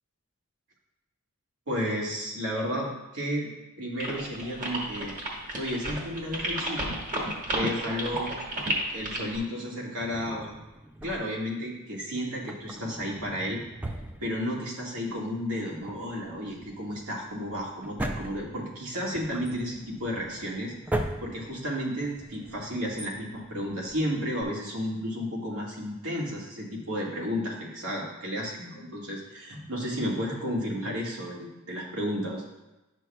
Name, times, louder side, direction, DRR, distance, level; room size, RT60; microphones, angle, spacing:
voice 1, 1.7-3.5 3.8-5.1 5.6-6.9 7.2-8.3 8.9-10.5 11.0-13.6 14.2-20.7 21.2-32.4, equal, 80° right, -3 dB, 1.8 m, -32 dB
sound 1, 4.0-9.4, right 1 dB, 40° right, 1.3 m, -32 dB
Drawer open or close, 10.0-11.5 12.3-14.9 15.1-15.2 15.7-24.4, right 1 dB, 5° right, 0.4 m, -39 dB
10.0 x 6.2 x 2.3 m, 1.0 s
head